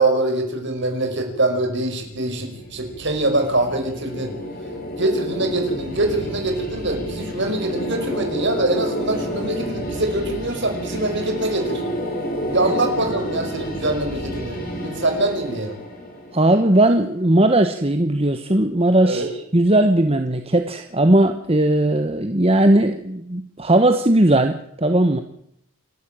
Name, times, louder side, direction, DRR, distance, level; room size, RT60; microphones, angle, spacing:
voice 1, 0.0-4.3 5.0-11.8 12.5-15.8 19.0-19.3, right 2 dB, 50° right, 5 dB, 5.4 m, -23 dB
sound 1, 2.0-17.1, equal, 40° left, 6.4 m, -30 dB
voice 2, 16.3-25.2, right 1 dB, 25° right, 7 dB, 1.2 m, -18 dB
28.5 x 13.0 x 9.0 m, 0.74 s
head